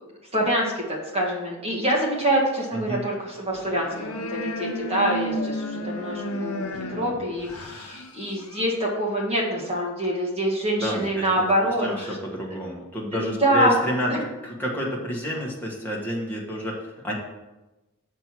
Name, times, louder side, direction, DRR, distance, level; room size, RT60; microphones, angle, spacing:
voice 1, 0.3-12.2 13.1-13.8 14.1-14.2, right 1 dB, 25° right, -3 dB, 1.7 m, -25 dB
voice 2, 2.7-3.1 10.8-11.5 11.8-14.1 14.4-17.1, equal, 10° left, -3 dB, 1.4 m, -29 dB
sound 1, 3.5-8.7, equal, 75° left, 0.8 m, -33 dB
6.8 x 4.7 x 6.0 m, 1.0 s
head